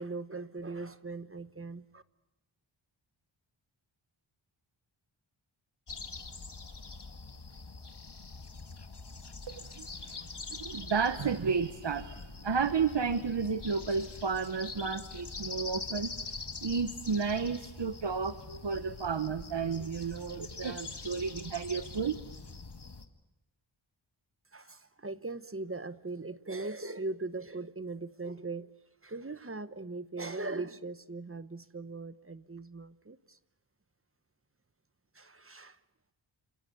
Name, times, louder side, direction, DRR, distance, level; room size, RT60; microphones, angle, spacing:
voice 1, 0.0-2.0 24.5-28.7 29.0-33.4 35.1-35.8, right 3 dB, 25° right, 13 dB, 1.1 m, -40 dB
sound 1, 5.9-23.0, left 4 dB, 55° left, 2.1 m, -44 dB
voice 2, 9.5-16.1 16.6-22.2, right 5 dB, 60° right, 11 dB, 1.1 m, -32 dB
29.0 x 28.0 x 6.9 m, 1.0 s
wide cardioid pair, 75°, 49 cm